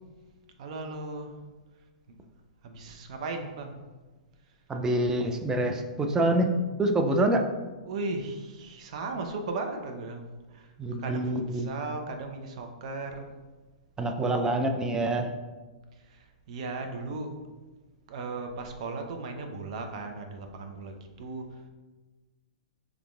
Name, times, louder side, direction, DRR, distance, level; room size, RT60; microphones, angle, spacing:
voice 1, 0.6-1.3 2.6-3.8 7.9-10.3 10.5-10.7 11.0-13.3 16.1-17.3 18.1-21.5, right 3 dB, 55° right, 5 dB, 0.6 m, -36 dB
voice 2, 4.7-6.5 6.8-7.4 10.8-11.7 14.0-15.3, right 1 dB, 15° right, 4 dB, 0.4 m, -26 dB
5.1 x 3.5 x 2.3 m, 1.2 s
hypercardioid pair, 115°, 4 cm